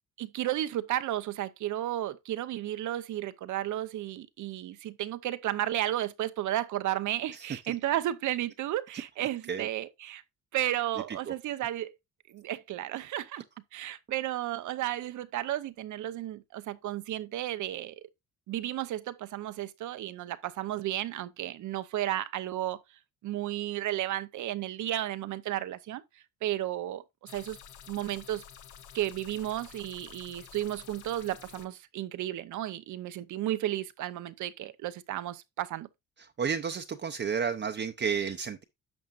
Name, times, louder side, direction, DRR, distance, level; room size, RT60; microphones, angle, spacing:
voice 1, 0.2-10.2 10.5-12.0 12.3-13.4 13.7-18.1 18.5-22.8 23.2-26.0 26.4-27.6 27.9-28.4 28.9-35.9, right 13 dB, 75° right, 0.8 m, -33 dB
voice 2, 9.2-9.7 11.1-11.3 36.2-38.6, right 6 dB, 35° right, 0.7 m, -32 dB
sound 1, 27.3-31.7, left 8 dB, 80° left, 1.0 m, -50 dB
10.5 x 6.3 x 2.5 m
cardioid pair, 90°, 30 cm